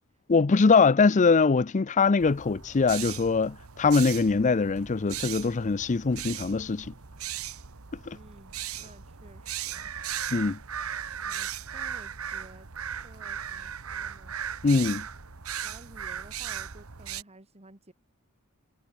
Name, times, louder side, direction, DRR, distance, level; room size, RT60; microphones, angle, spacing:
voice 1, 0.3-6.9 8.1-8.2 10.3-10.6 14.6-15.0, left 4 dB, 35° left, 0.5 m, -22 dB
sound 1, 2.2-17.2, right 9 dB, 80° right, 1.3 m, -37 dB
voice 2, 8.1-9.9 11.2-12.7 13.0-14.4 15.6-17.9, right 2 dB, 30° right, 2.3 m, -53 dB
head